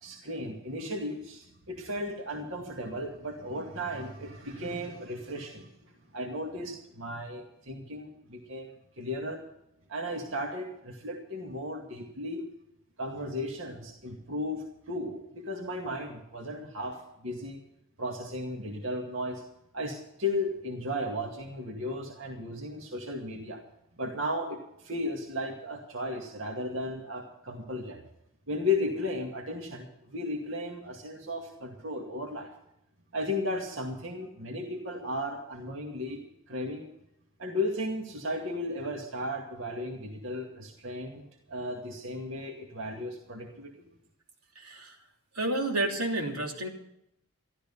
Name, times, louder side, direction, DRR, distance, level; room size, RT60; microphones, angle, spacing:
voice 1, 0.0-5.7 6.1-9.4 9.9-12.5 13.0-17.6 18.0-19.4 19.7-23.6 23.9-28.0 28.5-32.5 33.1-36.2 36.5-36.9 37.4-41.2 41.5-43.7, left 1 dB, 60° right, 1 dB, 2.2 m, -35 dB
voice 2, 44.5-44.9 45.3-46.7, right 1 dB, 90° right, 1 dB, 3.1 m, -30 dB
13.5 x 13.0 x 5.6 m, 0.79 s
head